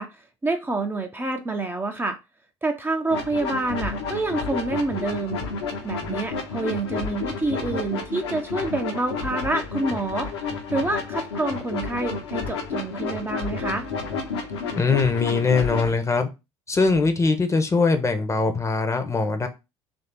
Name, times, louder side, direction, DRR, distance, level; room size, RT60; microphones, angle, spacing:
voice 1, 0.0-2.2 2.6-5.4 5.8-10.3 10.7-13.9, right 2 dB, 15° right, 0.5 m, -27 dB
sound 1, 3.1-15.9, left 4 dB, 70° left, 0.9 m, -30 dB
voice 2, 14.8-16.3 16.7-19.5, left 4 dB, 20° left, 0.7 m, -21 dB
3.2 x 2.6 x 4.4 m
figure-of-eight pair, 60°, 14 cm